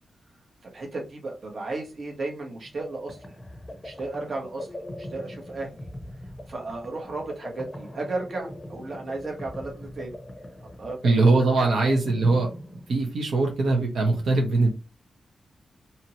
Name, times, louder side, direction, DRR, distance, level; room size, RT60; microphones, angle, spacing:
voice 1, 0.6-3.2 3.7-4.7 5.0-5.7 6.5-10.1 10.6-11.0 11.6-11.9, right 2 dB, 50° right, 1 dB, 1.1 m, -34 dB
sound 1, 2.5-13.3, left 1 dB, 15° left, 0.6 m, -41 dB
voice 2, 11.0-12.5 12.9-14.7, right 3 dB, 80° right, 1 dB, 0.9 m, -21 dB
2.8 x 2.7 x 2.9 m, 0.29 s
wide cardioid pair, 105°, 0 cm